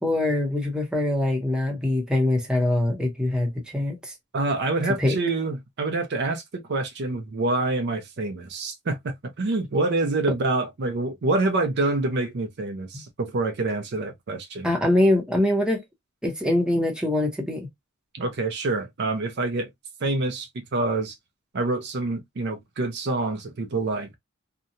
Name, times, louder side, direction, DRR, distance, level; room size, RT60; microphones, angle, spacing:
voice 1, 0.0-4.1 5.0-5.2 12.9-13.0 14.6-15.8 16.2-17.7, left 1 dB, 5° right, 0.8 m, -23 dB
voice 2, 4.3-14.7 18.1-19.7 20.0-21.2 21.5-24.2, right 2 dB, 50° right, 0.5 m, -26 dB
2.8 x 2.2 x 2.5 m
head